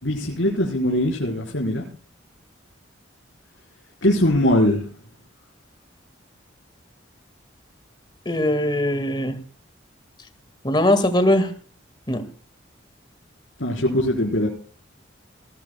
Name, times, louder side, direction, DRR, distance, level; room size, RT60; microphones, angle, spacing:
voice 1, 0.0-1.8 4.0-4.8 13.6-14.5, left 1 dB, 75° left, -2 dB, 4.3 m, -21 dB
voice 2, 8.3-9.4 10.6-11.5 12.1-12.2, left 1 dB, 25° left, 10 dB, 1.8 m, -20 dB
20.0 x 17.5 x 2.2 m, 0.40 s
head